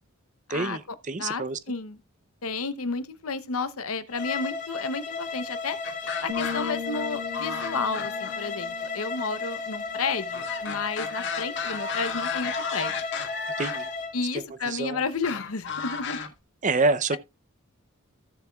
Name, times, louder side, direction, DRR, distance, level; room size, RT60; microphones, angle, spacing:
voice 1, 0.5-1.6 13.6-13.9 14.7-15.0 16.6-17.2, right 3 dB, 35° right, 0.6 m, -27 dB
voice 2, 1.2-2.0 2.4-5.8 6.2-13.0 14.1-16.2 17.1-17.2, left 4 dB, 85° left, 0.9 m, -32 dB
Bowed string instrument, 4.1-14.1, left 4 dB, 40° left, 2.0 m, -34 dB
sound 1, 5.8-7.0 7.3-8.5 10.3-13.9 15.2-16.3, left 5 dB, 55° left, 1.6 m, -34 dB
sound 2, 6.3-10.0, left 6 dB, 60° right, 2.4 m, -38 dB
15.5 x 7.0 x 2.4 m
head